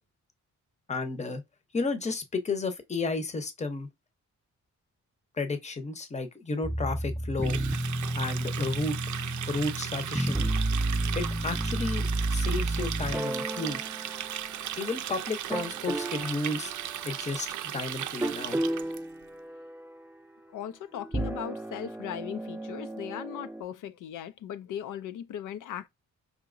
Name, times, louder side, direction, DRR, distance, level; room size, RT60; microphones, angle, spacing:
voice 1, 0.9-1.4 1.7-3.9 5.4-7.6 8.1-9.0 9.5-10.5 11.2-12.0 12.3-13.8 14.8-16.7 17.0-17.5 17.7-18.6, left 3 dB, 25° left, 0.7 m, -32 dB
sound 1, 6.6-14.9 15.5-16.4 18.2-19.9 21.0-23.6, right 2 dB, 5° right, 0.4 m, -31 dB
Water tap faucet, 7.4-19.0, right 11 dB, 75° right, 0.5 m, -37 dB
voice 2, 20.5-25.9, left 10 dB, 85° left, 0.5 m, -38 dB
4.9 x 2.8 x 2.5 m
cardioid pair, 110°, 30 cm